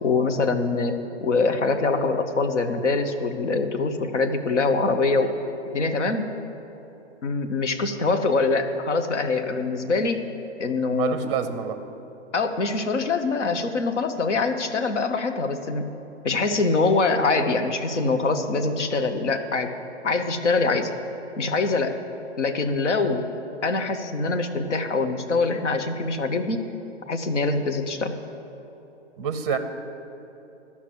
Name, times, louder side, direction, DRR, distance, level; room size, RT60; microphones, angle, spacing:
voice 1, 0.0-5.4 5.7-6.3 7.2-10.2 10.6-11.2 12.3-15.9 16.2-19.7 20.0-20.9 21.4-22.0 22.4-23.3 23.6-26.6 27.1-28.1, left 3 dB, 70° left, 7 dB, 1.1 m, -24 dB
voice 2, 10.9-11.8 29.2-29.6, right 7 dB, 25° right, 10 dB, 0.6 m, -27 dB
13.0 x 5.9 x 7.7 m, 3.0 s
figure-of-eight pair, 125°, 36 cm